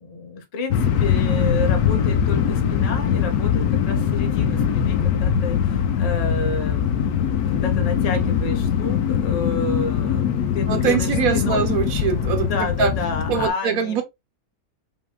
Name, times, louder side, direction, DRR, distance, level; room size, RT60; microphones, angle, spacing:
voice 1, 0.0-11.9 12.4-14.0, left 3 dB, 35° left, 0.7 m, -30 dB
sound 1, 0.7-13.5, left 8 dB, 85° left, 1.1 m, -22 dB
voice 2, 10.7-12.9 13.3-14.0, right 7 dB, 70° right, 1.2 m, -23 dB
5.4 x 2.9 x 2.3 m
omnidirectional pair, 1.6 m